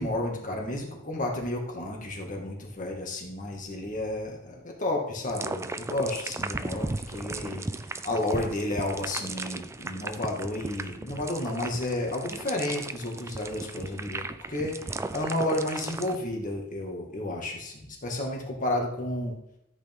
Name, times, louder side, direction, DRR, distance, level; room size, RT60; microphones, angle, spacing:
voice 1, 0.0-7.6 8.0-19.4, left 1 dB, 35° left, 0 dB, 2.0 m, -32 dB
sound 1, 5.3-16.2, right 2 dB, 15° right, 0.3 m, -36 dB
13.5 x 8.3 x 3.7 m, 0.82 s
head